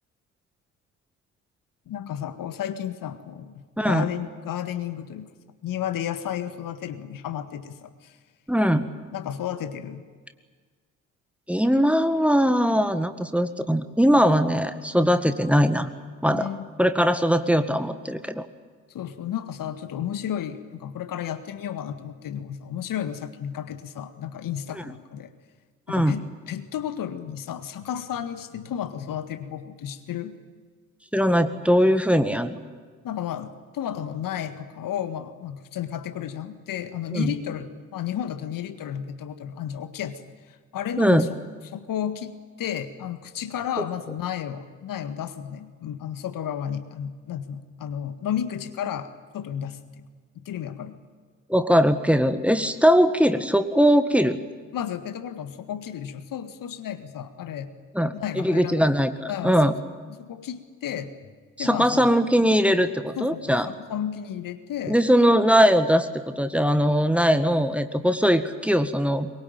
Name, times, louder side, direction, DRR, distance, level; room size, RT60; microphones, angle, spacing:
voice 1, 1.9-5.3 5.6-8.2 9.1-10.0 16.3-16.7 18.9-25.3 25.9-30.4 33.0-40.2 40.7-41.3 41.7-50.1 50.4-51.0 54.7-57.7 58.2-58.9 59.3-59.8 60.2-61.1 61.6-62.1 63.2-63.6 63.9-65.0, left 9 dB, 50° left, 10 dB, 1.8 m, -32 dB
voice 2, 3.8-4.1 8.5-8.9 11.5-15.9 16.2-16.5 16.8-18.5 24.7-24.8 25.9-26.2 31.1-32.6 37.1-37.4 41.0-41.3 43.8-43.9 51.5-54.4 57.9-59.7 61.6-63.7 64.9-69.3, equal, 5° right, 10 dB, 1.8 m, -21 dB
23.5 x 23.0 x 9.1 m, 1.5 s
figure-of-eight pair, 45°, 41 cm